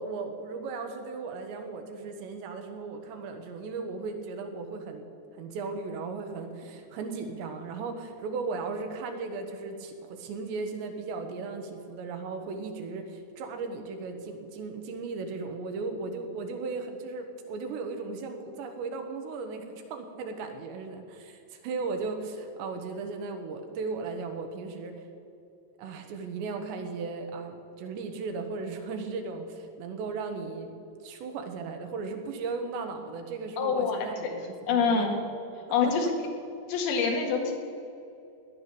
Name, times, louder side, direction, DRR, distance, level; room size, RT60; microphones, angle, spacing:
voice 1, 0.0-5.1 5.3-25.0 25.8-30.7 31.0-35.1, right 4 dB, 85° right, 5 dB, 3.6 m, -36 dB
voice 2, 33.6-34.3 34.7-35.2 35.7-36.1 36.7-37.5, left 5 dB, 80° left, 2 dB, 4.2 m, -26 dB
18.0 x 11.0 x 6.9 m, 2.7 s
omnidirectional pair, 5.0 m